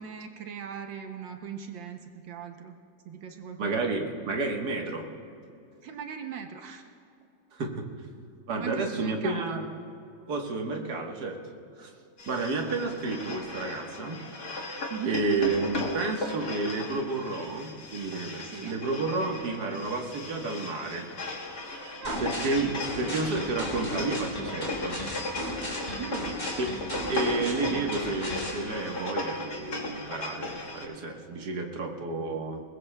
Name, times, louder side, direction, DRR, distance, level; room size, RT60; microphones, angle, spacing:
voice 1, 0.0-2.8 3.0-3.9 5.8-6.8 8.6-9.6 14.9-15.2 18.4-18.8 22.0-22.3 26.0-26.3, right 7 dB, 75° right, 5 dB, 1.4 m, -39 dB
voice 2, 3.6-5.1 7.5-7.8 8.5-9.6 10.3-11.4 11.8-11.9 12.3-14.2 14.5-14.7 15.1-21.1 21.6-25.0 25.8-26.0 26.6-26.7 27.1-32.6, right 3 dB, 55° right, 2 dB, 1.7 m, -31 dB
sound 1, 12.2-30.9, left 2 dB, 55° left, 2.1 m, -37 dB
sound 2, 22.0-28.6, left 1 dB, 30° left, 4.1 m, -35 dB
22.0 x 20.5 x 2.2 m, 2.5 s
omnidirectional pair, 2.2 m